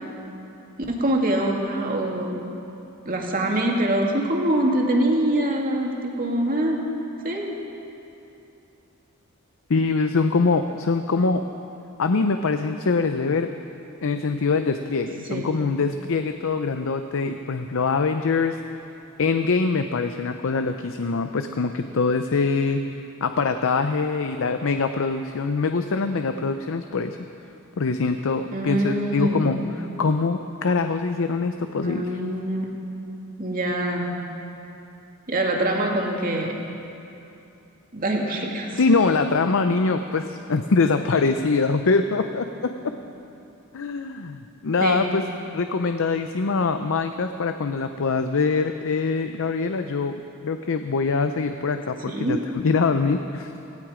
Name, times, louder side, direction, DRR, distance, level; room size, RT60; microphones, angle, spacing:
voice 1, 0.9-2.4 3.1-6.8 7.2-7.5 15.3-15.5 28.5-29.5 31.8-32.7 33.4-34.1 35.3-36.5 37.9-38.7 44.8-45.1 52.1-52.4, right 1 dB, 40° right, -1 dB, 2.2 m, -24 dB
voice 2, 9.7-11.4 12.0-13.5 14.0-18.6 19.2-22.9 23.2-27.2 27.8-32.1 38.8-42.7 43.7-45.3 45.5-50.1 50.4-53.5, left 4 dB, 65° left, 8 dB, 0.6 m, -23 dB
17.5 x 16.5 x 5.0 m, 2.8 s
head